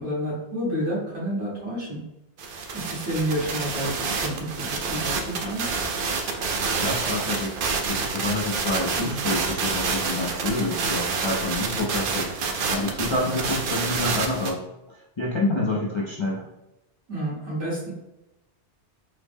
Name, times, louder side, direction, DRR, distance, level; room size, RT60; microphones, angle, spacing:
voice 1, 0.0-2.0 2.7-5.6 17.1-17.9, equal, 80° right, -6 dB, 1.8 m, -29 dB
sound 1, 2.4-14.5, right 4 dB, 60° right, 0.6 m, -28 dB
voice 2, 6.7-12.3 12.7-14.6 14.9-16.5, left 2 dB, 45° left, -5 dB, 0.4 m, -28 dB
3.8 x 2.0 x 3.4 m, 0.92 s
omnidirectional pair, 1.2 m